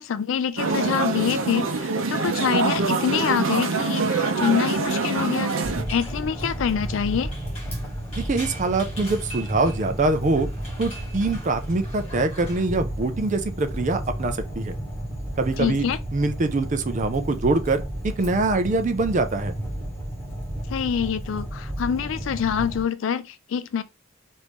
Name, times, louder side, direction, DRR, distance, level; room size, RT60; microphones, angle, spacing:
voice 1, 0.0-7.3 15.6-16.0 20.7-23.8, left 7 dB, 70° left, 0.4 m, -26 dB
sound 1, 0.6-5.8, right 3 dB, 75° right, 0.6 m, -24 dB
sound 2, 5.2-12.7, equal, 30° left, 1.8 m, -43 dB
Fire, 5.6-22.8, right 1 dB, 10° left, 1.5 m, -32 dB
voice 2, 8.2-10.5 10.8-14.7 15.4-15.9 16.1-17.8 18.2-19.5, right 3 dB, 40° right, 0.4 m, -24 dB
3.1 x 2.6 x 3.4 m
head